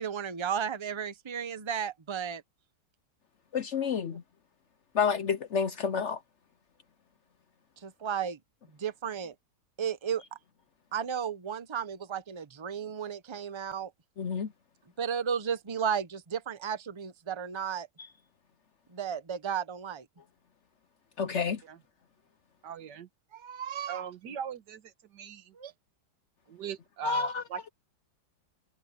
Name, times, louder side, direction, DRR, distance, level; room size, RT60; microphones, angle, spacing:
voice 1, 0.0-2.4 7.8-8.4 8.8-9.3 9.8-10.2 10.9-13.9 15.0-17.9 18.9-20.1 23.3-24.1 25.5-25.7, right 7 dB, 25° right, 0.6 m, -34 dB
voice 2, 3.5-4.2 4.9-6.2 14.2-14.5 21.2-21.6 27.0-27.4, left 6 dB, 60° left, 0.7 m, -29 dB
voice 3, 22.6-23.1 23.9-24.8 25.1-25.5 26.5-27.7, right 9 dB, 70° right, 1.8 m, -40 dB
omnidirectional pair, 1.9 m